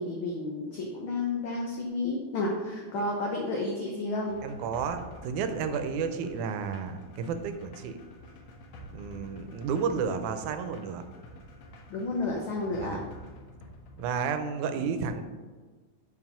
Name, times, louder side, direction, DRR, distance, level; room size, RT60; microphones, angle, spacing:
voice 1, 0.0-4.4 11.9-13.0 14.7-15.0, left 2 dB, 85° left, -1 dB, 1.1 m, -31 dB
sound 1, 4.3-14.4, equal, 65° left, 1.3 m, -49 dB
voice 2, 4.4-8.0 8.9-11.0 12.8-13.0 14.0-15.2, right 6 dB, 90° right, 8 dB, 2.1 m, -32 dB
5.6 x 4.7 x 5.6 m, 1.4 s
omnidirectional pair, 3.4 m